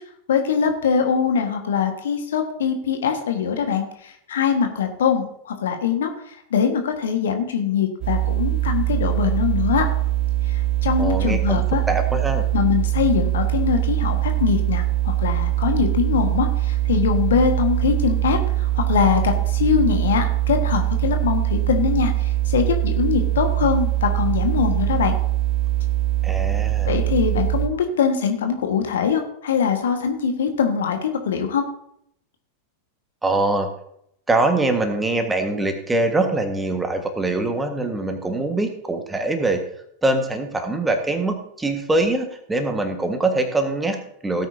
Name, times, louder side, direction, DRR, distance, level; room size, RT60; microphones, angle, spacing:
voice 1, 0.3-9.9 10.5-11.8 12.5-25.2 26.8-31.6, left 7 dB, 60° left, 5 dB, 1.6 m, -22 dB
sound 1, 8.0-27.7, right 15 dB, 35° right, 1.2 m, -22 dB
voice 2, 11.0-12.4 26.2-26.9 33.2-33.7 34.3-39.6 40.0-44.5, right 2 dB, 10° right, 5 dB, 1.6 m, -23 dB
17.0 x 8.9 x 2.8 m, 0.71 s
figure-of-eight pair, 90°, 0 cm